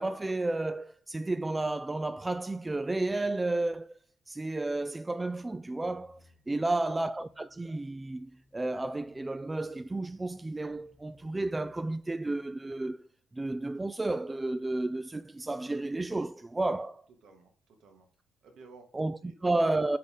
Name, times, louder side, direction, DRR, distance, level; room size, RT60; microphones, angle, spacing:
voice 1, 0.0-4.0 4.3-6.2 6.5-13.0 13.3-17.0 18.9-19.2 19.4-20.0, right 2 dB, 15° right, 0.3 m, -32 dB
sound 1, 5.8-12.3, left 2 dB, 60° left, 3.7 m, -64 dB
voice 2, 6.5-7.1 17.1-18.1 18.4-18.9 19.2-19.4, right 3 dB, 70° right, 2.2 m, -55 dB
7.5 x 6.2 x 3.8 m
cardioid pair, 90°, 0 cm